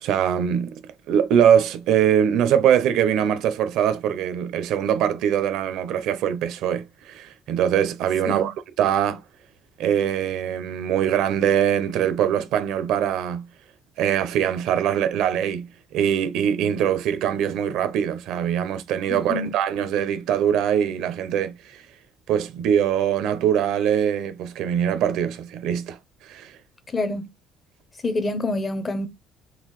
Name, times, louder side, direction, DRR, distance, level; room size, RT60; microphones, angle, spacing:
voice 1, 0.0-0.8 1.1-9.2 9.8-13.5 14.0-21.8 22.3-26.0 26.2-26.5, right 9 dB, 70° right, 0.5 m, -22 dB
voice 2, 19.1-19.5 26.9-27.3 28.0-29.1, left 2 dB, 20° left, 0.5 m, -26 dB
3.7 x 2.4 x 3.0 m
cardioid pair, 160°, 0 cm